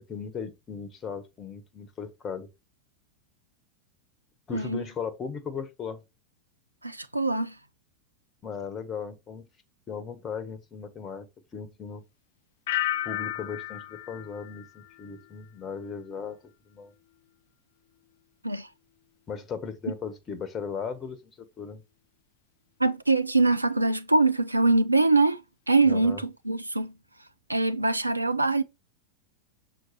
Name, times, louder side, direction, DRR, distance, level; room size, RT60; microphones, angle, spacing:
voice 1, 0.1-2.5 4.5-6.0 8.4-9.5 9.9-11.3 11.5-12.0 13.0-16.9 19.3-21.8 25.8-26.2, left 6 dB, 25° left, 1.3 m, -37 dB
voice 2, 4.5-4.8 6.8-7.5 18.4-18.7 22.8-25.4 25.7-26.9 27.5-28.6, right 3 dB, 85° right, 0.7 m, -23 dB
sound 1, 12.7-15.5 15.8-16.3, left 14 dB, 55° left, 0.3 m, -34 dB
6.6 x 4.3 x 4.7 m
figure-of-eight pair, 90°, 0 cm